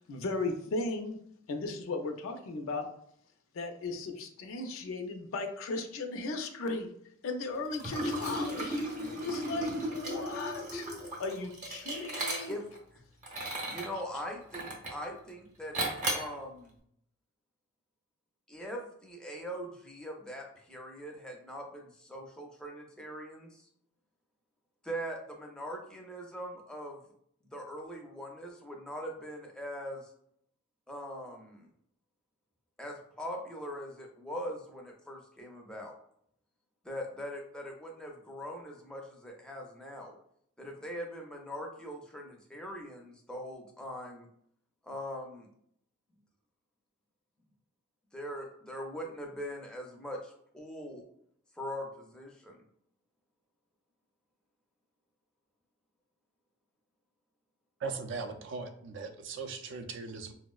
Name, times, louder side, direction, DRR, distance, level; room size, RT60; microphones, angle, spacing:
voice 1, 0.1-1.2 1.5-2.9 3.5-6.9 7.2-10.9 11.2-12.5, left 3 dB, 70° left, 5 dB, 0.4 m, -36 dB
Liquid, 7.7-12.8 13.2-13.9 14.5-15.1 15.7-16.3, right 1 dB, 35° right, 0.7 m, -35 dB
voice 2, 8.5-9.2 12.5-12.6 13.7-16.7 18.5-23.7 24.8-27.0 27.5-30.1 30.9-31.7 32.8-35.9 36.8-40.2 40.6-44.3 44.8-45.5 48.1-51.0 51.6-52.6, equal, 5° left, 0 dB, 0.4 m, -41 dB
voice 3, 57.8-60.3, right 4 dB, 60° right, 7 dB, 0.4 m, -39 dB
4.1 x 2.0 x 2.3 m, 0.69 s
head